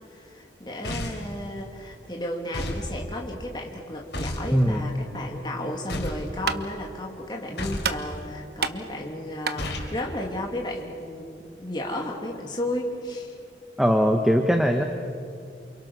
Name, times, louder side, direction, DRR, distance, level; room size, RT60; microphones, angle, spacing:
voice 1, 0.1-13.3, left 1 dB, 25° left, 0 dB, 3.0 m, -33 dB
sound 1, 0.8-1.3 2.5-2.9 4.1-4.5 5.9-6.3 7.6-8.0 9.6-9.9, left 1 dB, 75° left, 4.4 m, -31 dB
voice 2, 4.5-4.9 13.8-14.8, equal, ahead, 4 dB, 1.2 m, -20 dB
sound 2, 6.1-11.2, right 5 dB, 65° right, 1.1 m, -34 dB
28.5 x 28.5 x 6.3 m, 2.3 s
head